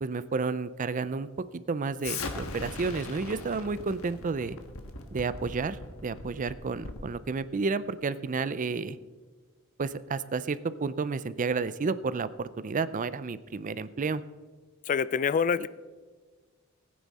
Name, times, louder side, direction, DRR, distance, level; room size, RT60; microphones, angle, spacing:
voice 1, 0.0-1.3 1.5-4.6 5.1-9.0 9.8-14.2, right 4 dB, 40° right, 15 dB, 0.5 m, -31 dB
Explosion, 2.0-7.1, left 3 dB, 90° left, 1.4 m, -39 dB
voice 2, 14.9-15.7, left 6 dB, 40° left, 17 dB, 0.3 m, -26 dB
18.0 x 9.5 x 4.2 m, 1.4 s
head